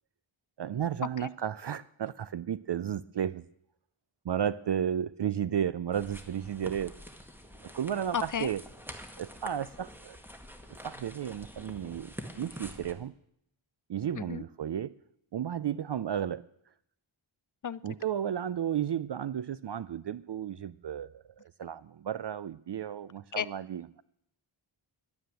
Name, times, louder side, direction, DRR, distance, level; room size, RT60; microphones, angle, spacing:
voice 1, 0.6-3.5 4.2-6.9 7.7-8.6 9.2-10.2 10.8-13.1 13.9-14.9 15.3-16.4 17.8-24.0, right 9 dB, 55° right, 17 dB, 0.5 m, -33 dB
sound 1, 5.9-12.9, equal, 5° right, 1.9 m, -47 dB
voice 2, 8.1-8.5 14.1-14.4 17.6-17.8 23.4-23.5, left 8 dB, 40° left, 19 dB, 0.5 m, -32 dB
11.0 x 9.4 x 8.9 m, 0.73 s
wide cardioid pair, 60°, 50 cm